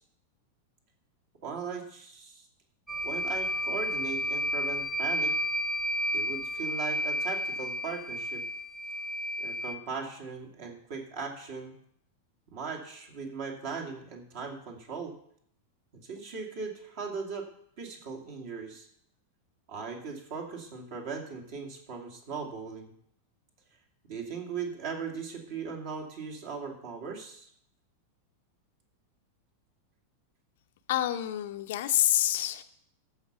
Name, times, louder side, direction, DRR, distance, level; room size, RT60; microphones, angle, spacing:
voice 1, 1.4-2.5 3.0-5.3 6.1-8.4 9.4-11.7 12.5-15.2 16.0-17.5 17.8-18.9 19.7-22.9 24.1-27.5, right 5 dB, 50° right, 2 dB, 2.4 m, -38 dB
sound 1, 2.9-9.7, equal, ahead, 0.7 m, -31 dB
voice 2, 30.9-32.6, left 13 dB, 55° left, 9 dB, 0.6 m, -27 dB
14.0 x 5.7 x 6.0 m, 0.68 s
figure-of-eight pair, 90°, 0 cm